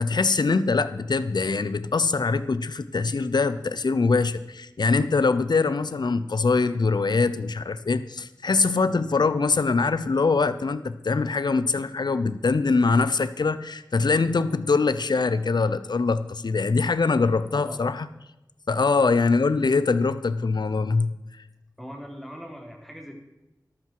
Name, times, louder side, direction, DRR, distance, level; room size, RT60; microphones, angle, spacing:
voice 1, 0.0-18.1 18.7-21.1, left 4 dB, 70° left, 14 dB, 0.7 m, -23 dB
voice 2, 21.8-23.1, equal, ahead, 0 dB, 4.1 m, -40 dB
14.0 x 12.0 x 4.7 m, 0.98 s
wide cardioid pair, 50°, 8 cm